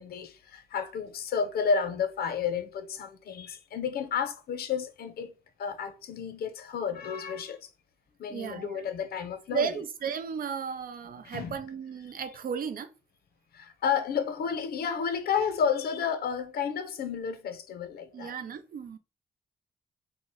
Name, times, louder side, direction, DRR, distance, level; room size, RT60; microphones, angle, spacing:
voice 1, 0.0-5.3 5.6-7.6 8.2-9.8 11.2-11.6 13.5-18.3, left 6 dB, 85° left, 0.6 m, -31 dB
voice 2, 8.3-8.8 9.5-12.9 18.1-19.0, right 7 dB, 65° right, 0.6 m, -34 dB
3.7 x 2.0 x 4.0 m
cardioid pair, 100°, 16 cm